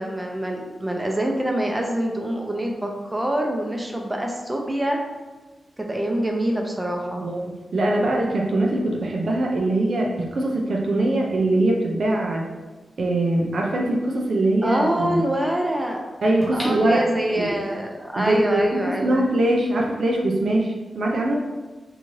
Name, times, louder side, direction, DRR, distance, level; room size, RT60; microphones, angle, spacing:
voice 1, 0.0-5.0 5.8-7.3 14.6-16.0 16.5-19.2, right 1 dB, 15° right, 1 dB, 0.5 m, -25 dB
voice 2, 7.1-7.4 7.7-12.5 13.0-15.2 16.2-17.1 17.3-17.5 18.2-21.4, right 1 dB, 70° right, 0 dB, 0.4 m, -22 dB
sound 1, 16.4-17.7 18.2-18.3, equal, 35° left, 0.9 m, -36 dB
2.7 x 2.3 x 3.0 m, 1.2 s
cardioid pair, 50°, 0 cm